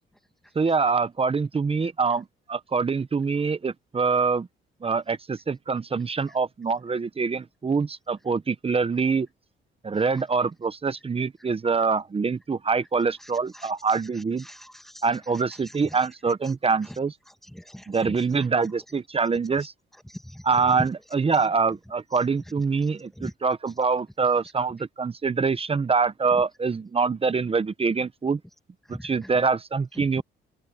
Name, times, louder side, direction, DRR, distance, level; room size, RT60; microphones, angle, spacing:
voice 1, 0.5-4.5 4.8-9.3 9.8-14.4 15.0-17.1 17.9-19.7 20.4-28.4 28.9-30.2, right 5 dB, 30° right, 1.0 m, -25 dB
voice 2, 14.4-15.0 17.5-18.1 20.1-20.4 23.2-23.3 28.9-29.1 30.0-30.2, equal, ahead, 2.3 m, -40 dB
cardioid pair, 90°, 20 cm